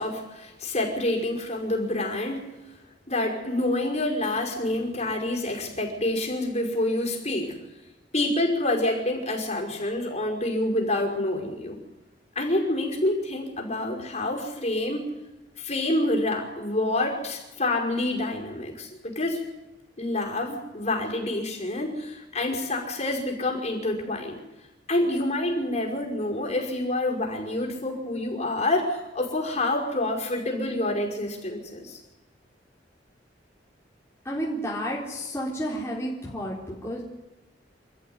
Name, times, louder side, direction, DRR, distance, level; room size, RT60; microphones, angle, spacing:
voice 1, 0.0-2.5 3.1-7.6 8.1-11.8 12.4-15.1 15.6-19.4 20.0-24.4 24.9-32.0, left 1 dB, 40° left, 0 dB, 5.4 m, -27 dB
voice 2, 34.2-37.0, equal, 15° left, -6 dB, 3.9 m, -31 dB
27.5 x 14.0 x 9.7 m, 1.0 s
head